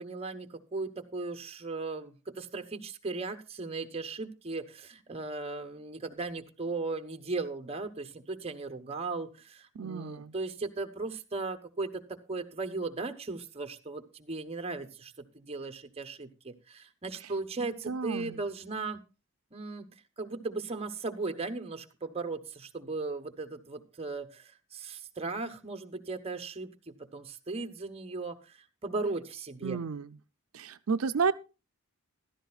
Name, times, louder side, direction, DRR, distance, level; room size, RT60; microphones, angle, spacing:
voice 1, 0.0-19.0 19.5-19.9 20.2-29.8, right 3 dB, 30° right, 8 dB, 1.0 m, -37 dB
voice 2, 9.8-10.3 17.9-18.4 29.6-30.1 30.5-31.3, right 5 dB, 80° right, 11 dB, 0.5 m, -31 dB
15.0 x 12.5 x 2.3 m, 0.31 s
head